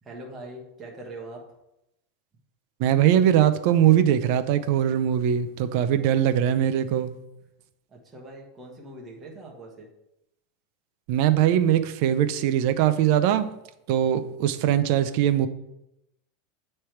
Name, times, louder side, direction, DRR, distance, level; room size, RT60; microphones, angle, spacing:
voice 1, 0.0-1.5 7.9-9.9, right 2 dB, 15° right, -2 dB, 1.2 m, -42 dB
voice 2, 2.8-7.1 11.1-13.5 13.9-15.5, right 10 dB, 45° right, 10 dB, 0.5 m, -21 dB
8.5 x 3.3 x 4.5 m, 0.86 s
supercardioid pair, 170°, 0 cm